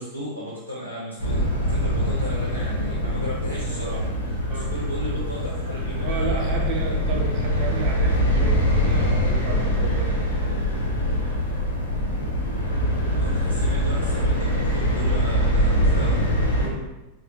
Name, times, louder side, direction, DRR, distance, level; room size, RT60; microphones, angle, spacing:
voice 1, 0.0-4.1 4.5-7.0 13.1-16.2, equal, 90° right, -6 dB, 0.6 m, -35 dB
sound 1, 1.2-16.7, equal, 75° left, 0.7 m, -23 dB
voice 2, 6.0-10.2 16.6-16.9, right 4 dB, 40° right, 1 dB, 0.5 m, -33 dB
3.3 x 2.0 x 2.7 m, 1.1 s
figure-of-eight pair, 90°, 0 cm